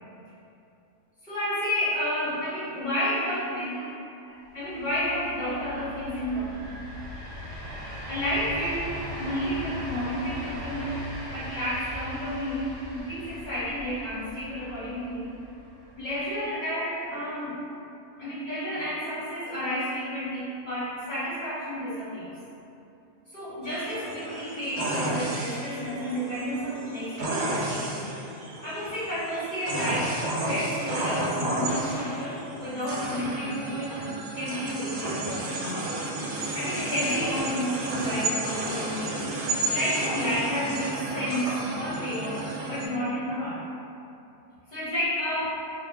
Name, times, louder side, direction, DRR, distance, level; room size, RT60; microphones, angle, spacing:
voice 1, 1.2-3.9 4.3-6.7 8.1-11.0 11.3-15.3 16.0-17.6 18.2-22.4 23.3-28.0 28.6-34.1 34.3-35.8 36.5-39.2 39.7-43.6 44.7-45.6, equal, 50° left, -10 dB, 0.5 m, -31 dB
sound 1, 4.5-16.5, equal, 65° right, 0.9 m, -39 dB
sound 2, 23.6-42.9, right 2 dB, 90° right, 1.1 m, -32 dB
2.4 x 2.0 x 3.3 m, 2.7 s
omnidirectional pair, 1.5 m